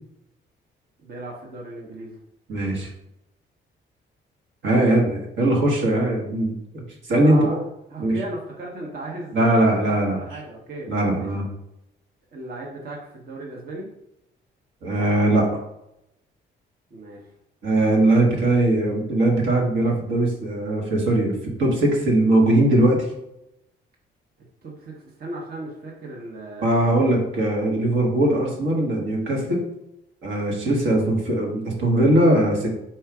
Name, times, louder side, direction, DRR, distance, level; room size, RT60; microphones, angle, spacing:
voice 1, 1.0-2.2 7.2-7.6 7.9-11.3 12.3-13.9 16.9-17.2 24.6-26.7, right 2 dB, 50° right, -2 dB, 1.0 m, -36 dB
voice 2, 2.5-2.9 4.6-6.8 7.1-7.6 8.0-8.1 9.3-10.2 10.9-11.5 14.8-15.5 17.6-23.1 26.6-29.6 30.2-32.7, right 1 dB, 75° right, -1 dB, 1.3 m, -20 dB
4.5 x 2.4 x 4.7 m, 0.84 s
cardioid pair, 90°, 20 cm